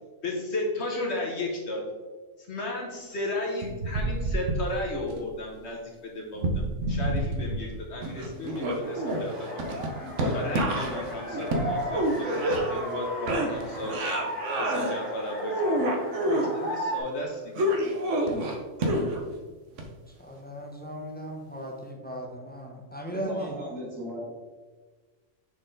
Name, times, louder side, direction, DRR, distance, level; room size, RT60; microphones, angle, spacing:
voice 1, 0.2-1.8 2.5-6.4 6.9-9.8 10.3-12.3 12.7-14.2 14.6-16.0 16.2-17.7, left 2 dB, 60° left, 0 dB, 1.2 m, -34 dB
sound 1, 3.6-5.1 6.3-7.8 8.0-13.0 13.3-14.9 15.3-16.5 17.6-19.3 19.8-19.9, right 1 dB, 70° right, 1.2 m, -28 dB
sound 2, 8.8-17.0, equal, 5° right, 1.7 m, -36 dB
voice 2, 20.2-23.6, right 1 dB, 10° left, 0 dB, 0.8 m, -37 dB
voice 3, 23.1-24.2, equal, 85° right, -3 dB, 2.2 m, -36 dB
6.5 x 4.2 x 3.9 m, 1.3 s
omnidirectional pair, 1.3 m